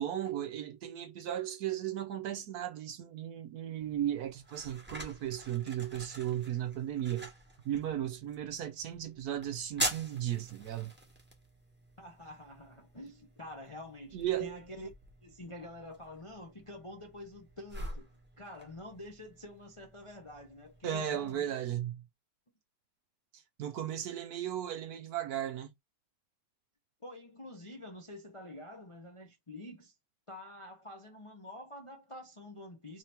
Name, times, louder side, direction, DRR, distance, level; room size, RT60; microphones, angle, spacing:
voice 1, 0.0-7.3 7.6-10.9 14.1-14.6 20.8-22.0 23.3-25.7, right 11 dB, 70° right, 1.0 m, -36 dB
sound 1, 3.8-21.3, right 1 dB, 5° right, 1.0 m, -45 dB
voice 2, 12.0-14.9 15.2-18.1 18.4-21.5 27.0-29.9 30.3-33.0, left 1 dB, 35° left, 0.5 m, -47 dB
3.7 x 2.8 x 3.3 m
omnidirectional pair, 1.9 m